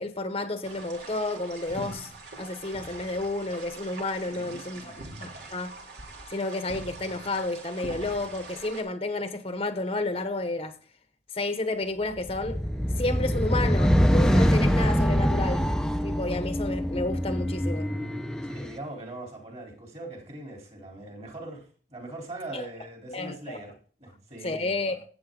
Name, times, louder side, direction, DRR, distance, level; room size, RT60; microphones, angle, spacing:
voice 1, 0.0-2.1 2.4-5.7 6.3-10.8 11.3-12.6 13.0-15.7 16.0-17.9 22.5-22.6 23.1-23.7 24.4-25.0, left 2 dB, 30° left, 1.0 m, -31 dB
sound 1, 0.6-8.8, right 2 dB, 70° right, 3.1 m, -43 dB
voice 2, 4.3-5.0 18.4-25.0, right 2 dB, 35° right, 3.7 m, -41 dB
sound 2, 12.2-18.7, equal, 5° left, 0.6 m, -24 dB
13.5 x 8.7 x 3.8 m
head